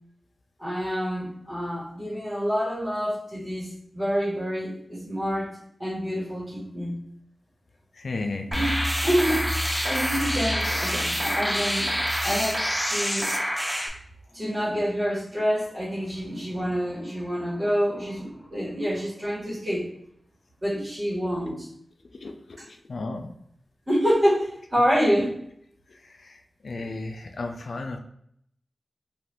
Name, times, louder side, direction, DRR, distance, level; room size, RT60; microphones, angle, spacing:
voice 1, 0.6-5.5 5.8-7.0 8.5-8.7 9.0-9.5 9.8-11.9 12.2-13.3 14.3-19.9 20.6-21.7 23.9-25.3, equal, 45° right, -8 dB, 1.4 m, -27 dB
voice 2, 7.9-8.5 22.2-23.3 25.9-28.0, left 3 dB, 75° left, 4 dB, 0.4 m, -34 dB
sound 1, 8.5-13.9, equal, 5° right, 0.5 m, -26 dB
2.7 x 2.4 x 3.3 m, 0.71 s
cardioid pair, 50°, 0 cm